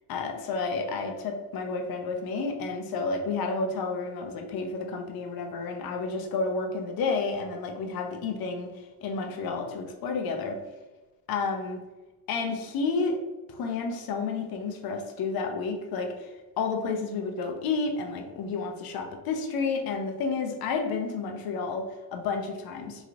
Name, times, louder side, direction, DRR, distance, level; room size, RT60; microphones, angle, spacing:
voice 1, 0.1-10.6 11.3-11.8 12.3-13.2 13.5-23.1, left 4 dB, 55° left, 4 dB, 0.7 m, -31 dB
3.1 x 3.0 x 2.4 m, 1.2 s
supercardioid pair, 80°, 44 cm